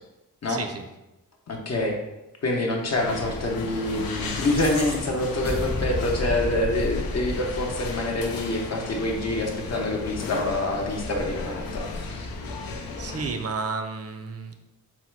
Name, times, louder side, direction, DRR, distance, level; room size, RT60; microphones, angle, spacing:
voice 1, 0.5-0.8 13.0-14.5, right 4 dB, 45° right, 6 dB, 0.5 m, -32 dB
voice 2, 1.5-2.0 2.4-12.3, left 1 dB, 50° left, 1 dB, 0.7 m, -26 dB
sound 1, 2.8-13.5, left 3 dB, 90° left, 0.5 m, -35 dB
sound 2, 3.9-8.3, left 2 dB, 30° left, 1.0 m, -32 dB
4.2 x 2.1 x 4.4 m, 0.98 s
wide cardioid pair, 110°, 34 cm